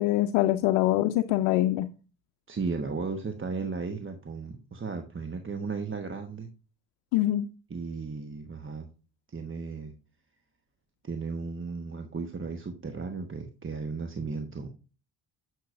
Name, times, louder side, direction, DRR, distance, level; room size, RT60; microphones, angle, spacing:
voice 1, 0.0-1.9 7.1-7.5, left 15 dB, 80° left, 9 dB, 0.6 m, -24 dB
voice 2, 2.5-6.5 7.7-8.9 9.3-9.9 11.0-14.7, right 4 dB, 25° right, 5 dB, 1.2 m, -35 dB
10.0 x 6.6 x 2.6 m, 0.34 s
hypercardioid pair, 55°, 45 cm